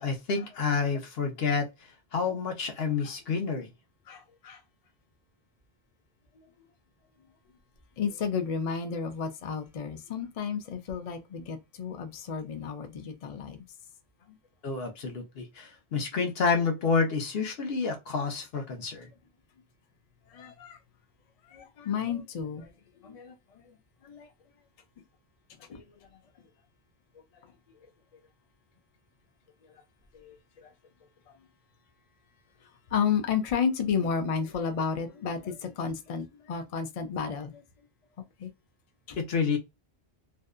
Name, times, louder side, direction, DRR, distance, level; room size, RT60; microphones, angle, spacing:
voice 1, 0.0-1.7 2.1-3.7 14.6-19.1 39.2-39.6, left 5 dB, 70° left, 0.9 m, -29 dB
voice 2, 4.1-4.6 8.0-13.7 14.3-14.4 20.3-20.8 21.4-22.7 23.0-23.8 24.0-24.3 25.6-26.0 27.8-27.9 29.6-29.8 30.1-30.7 31.3-31.4 32.6-37.6 38.4-38.5 39.1-39.2, left 6 dB, 50° left, 0.4 m, -32 dB
2.6 x 2.2 x 2.3 m
omnidirectional pair, 1.1 m